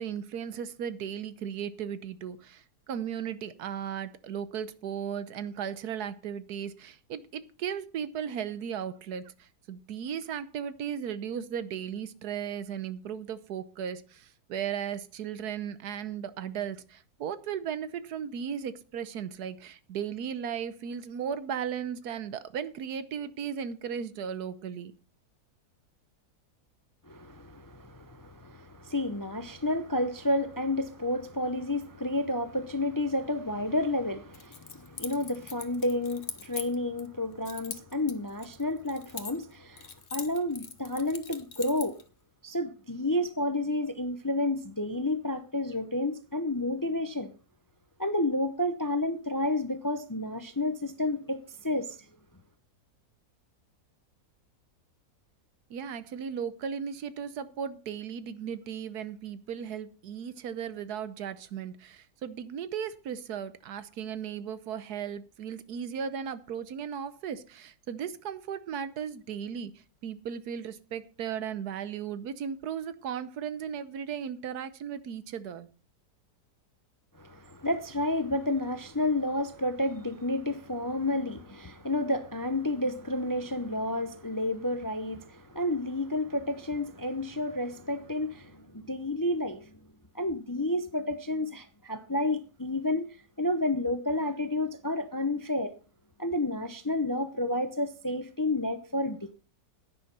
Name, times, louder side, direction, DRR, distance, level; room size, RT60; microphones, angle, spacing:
voice 1, 0.0-24.9 55.7-75.7, right 8 dB, 75° right, 1.4 m, -36 dB
voice 2, 27.1-42.0 42.4-47.3 48.0-52.0 77.2-89.7 90.1-93.1 93.4-95.7 96.2-99.3, left 1 dB, 20° left, 0.5 m, -30 dB
Keys jangling, 34.3-37.1 37.4-39.5 39.8-42.0, left 6 dB, 45° left, 1.3 m, -41 dB
10.5 x 9.5 x 5.4 m
omnidirectional pair, 1.7 m